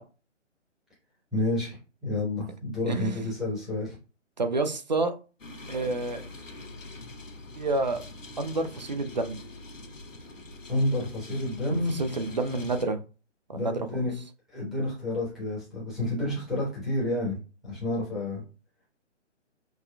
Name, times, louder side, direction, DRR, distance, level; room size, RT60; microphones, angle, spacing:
voice 1, 1.3-3.9 10.7-12.0 13.5-14.1 14.5-17.4 17.6-18.4, left 1 dB, ahead, -8 dB, 0.9 m, -29 dB
voice 2, 2.9-3.2 4.4-5.2 5.7-6.2 7.6-8.0 8.4-9.4 11.7-13.0 13.5-14.0, right 2 dB, 40° right, 8 dB, 0.4 m, -29 dB
sound 1, 5.4-12.8, left 2 dB, 90° left, 0.9 m, -44 dB
5.7 x 2.2 x 2.2 m, 0.34 s
figure-of-eight pair, 140°, 37 cm